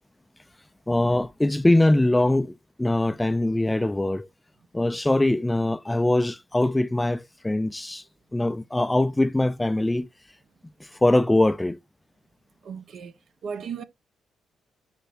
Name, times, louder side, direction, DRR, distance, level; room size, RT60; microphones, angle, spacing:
voice 1, 0.9-4.3 4.7-8.0 8.3-10.1 11.0-11.8, left 1 dB, 10° left, 0.4 m, -22 dB
voice 2, 12.6-13.1 13.4-13.8, right 6 dB, 65° right, 1.1 m, -35 dB
11.0 x 4.4 x 2.6 m
cardioid pair, 85°, 0 cm